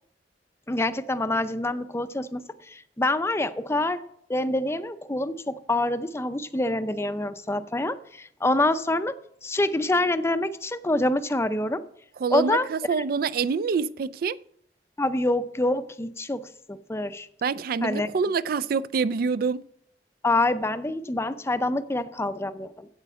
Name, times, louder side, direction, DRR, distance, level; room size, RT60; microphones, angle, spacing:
voice 1, 0.7-4.0 4.3-9.1 9.4-11.8 12.3-12.7 15.0-17.3 17.8-18.1 20.2-22.9, left 2 dB, 15° left, 0.5 m, -26 dB
voice 2, 12.2-14.4 17.4-19.6, right 5 dB, 55° right, 0.4 m, -26 dB
8.3 x 8.1 x 5.6 m
head